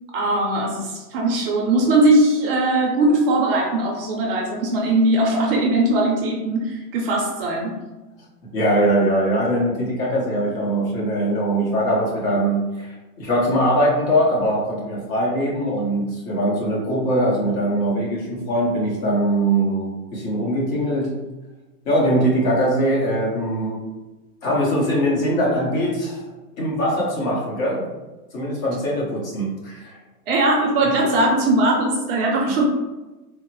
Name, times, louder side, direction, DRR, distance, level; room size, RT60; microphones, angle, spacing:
voice 1, 0.1-7.8 30.3-32.6, right 2 dB, 40° right, -1 dB, 0.5 m, -20 dB
voice 2, 8.5-21.1 21.8-23.8 24.4-26.2 26.6-27.9 28.3-30.0 31.0-31.1, right 1 dB, 55° left, -4 dB, 1.4 m, -21 dB
3.8 x 2.1 x 2.9 m, 1.1 s
supercardioid pair, 145°, 47 cm